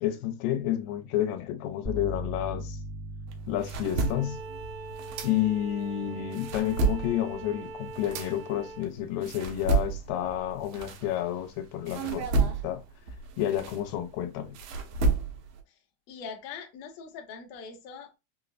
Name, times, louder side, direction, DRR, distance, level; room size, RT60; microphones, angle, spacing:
voice 1, 0.0-2.8 3.5-4.4 5.2-12.8 13.4-14.6, left 11 dB, 90° left, 2.3 m, -30 dB
sound 1, 1.8-9.6, equal, 25° right, 0.5 m, -42 dB
sound 2, 3.3-5.8 6.2-11.5 11.9-15.6, right 3 dB, 85° right, 2.3 m, -31 dB
Bowed string instrument, 3.8-8.9, right 3 dB, 70° right, 2.1 m, -43 dB
voice 2, 16.1-18.2, left 6 dB, 70° left, 1.8 m, -42 dB
5.5 x 2.0 x 2.4 m
omnidirectional pair, 3.9 m